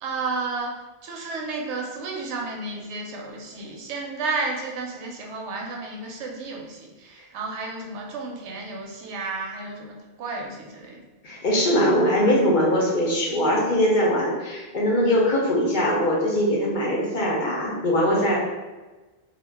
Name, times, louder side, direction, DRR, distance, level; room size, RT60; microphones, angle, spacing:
voice 1, 0.0-11.0, right 3 dB, 85° right, 0 dB, 0.9 m, -32 dB
voice 2, 11.2-18.4, equal, 55° left, -4 dB, 0.7 m, -21 dB
2.3 x 2.1 x 3.3 m, 1.2 s
omnidirectional pair, 1.1 m